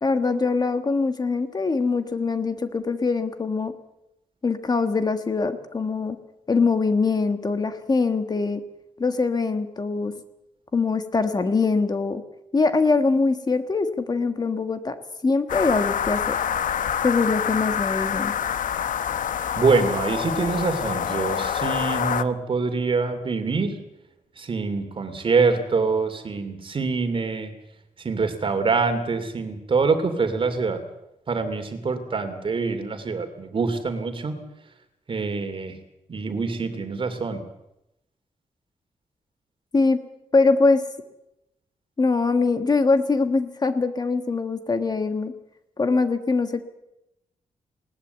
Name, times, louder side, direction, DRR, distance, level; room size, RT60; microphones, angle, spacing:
voice 1, 0.0-3.7 4.4-6.2 6.5-8.6 9.0-10.1 10.7-12.2 12.5-15.0 15.2-16.4 17.0-18.3 39.7-40.0 40.3-40.8 42.0-45.3 45.8-46.6, left 4 dB, 30° left, 9 dB, 1.4 m, -23 dB
sound 1, 15.5-22.2, left 8 dB, 80° left, 0.9 m, -26 dB
voice 2, 19.5-23.8 24.4-27.5 28.0-30.8 31.3-34.4 35.1-35.8 36.1-37.4, right 4 dB, 40° right, 8 dB, 2.7 m, -25 dB
20.5 x 18.5 x 8.2 m, 0.87 s
wide cardioid pair, 150°, 13 cm